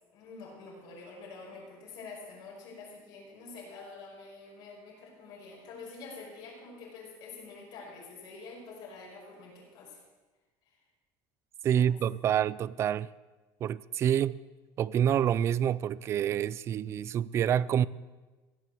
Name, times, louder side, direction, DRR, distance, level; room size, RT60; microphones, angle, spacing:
voice 1, 0.1-10.0 10.7-10.8 11.8-11.9, left 4 dB, 65° left, 5.4 m, -47 dB
voice 2, 11.6-13.1 13.6-14.4 14.8-17.9, right 9 dB, 35° right, 0.3 m, -27 dB
16.5 x 7.9 x 7.7 m
cardioid pair, 140°, 8 cm